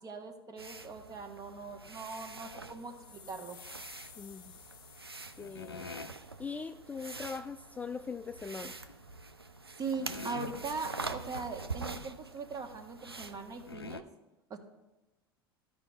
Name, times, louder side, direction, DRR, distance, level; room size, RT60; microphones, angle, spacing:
voice 1, 0.0-3.6 9.8-14.0 14.5-14.6, right 4 dB, 30° right, 5 dB, 1.3 m, -40 dB
sound 1, 0.6-13.7, right 3 dB, 90° right, 0.5 m, -45 dB
sound 2, 2.6-6.7, left 10 dB, 35° left, 0.7 m, -56 dB
voice 2, 4.2-4.5 5.4-5.9 6.4-8.7, left 5 dB, 10° left, 8 dB, 0.3 m, -41 dB
sound 3, 5.4-6.2 8.6-9.0 9.6-9.7 10.0-10.8 11.3-11.4 11.7-11.8 12.4-12.5 13.3-13.4 13.7-14.0, left 4 dB, 85° left, 0.4 m, -44 dB
14.5 x 5.1 x 3.2 m, 1.0 s
figure-of-eight pair, 75°, 12 cm